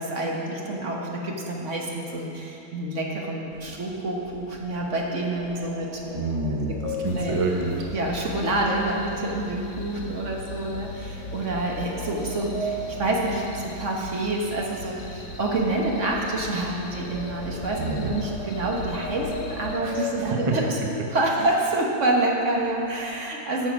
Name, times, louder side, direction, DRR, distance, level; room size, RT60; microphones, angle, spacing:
voice 1, 0.0-6.2 6.8-7.4 7.9-20.6 21.1-23.7, right 2 dB, 50° right, -1 dB, 1.4 m, -27 dB
sound 1, 3.5-8.9 9.2-9.5 10.0-10.1 11.0-14.3 14.5-20.8 21.4-21.5 21.8-22.1 22.4-23.1, left 1 dB, 65° left, 1.7 m, -38 dB
voice 2, 6.1-7.9 17.8-18.2 19.8-20.5 21.4-21.5, right 2 dB, 35° right, 0 dB, 0.5 m, -28 dB
sound 2, 7.1-19.8, left 3 dB, 80° left, 1.5 m, -39 dB
9.0 x 6.3 x 6.1 m, 2.8 s
omnidirectional pair, 1.7 m